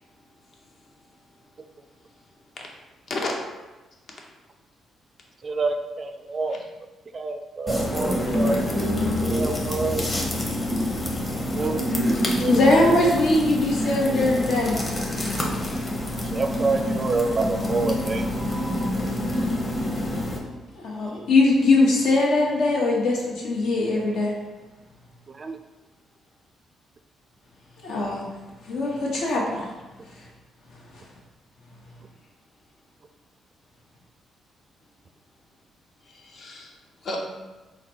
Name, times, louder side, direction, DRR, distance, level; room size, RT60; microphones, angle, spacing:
voice 1, 5.4-6.6 7.1-8.6 9.2-10.2 11.5-11.8 12.1-12.6 16.3-18.2 25.4-25.6, right 3 dB, 40° right, 6 dB, 0.3 m, -27 dB
sound 1, 7.7-20.4, left 1 dB, 20° left, 0.8 m, -26 dB
voice 2, 12.1-14.8 20.8-24.3 27.8-28.3 28.7-29.7, left 2 dB, 75° left, -3 dB, 1.1 m, -21 dB
voice 3, 36.0-37.2, left 2 dB, 55° left, 0 dB, 0.8 m, -34 dB
3.9 x 2.2 x 4.4 m, 1.2 s
cardioid pair, 90°, 0 cm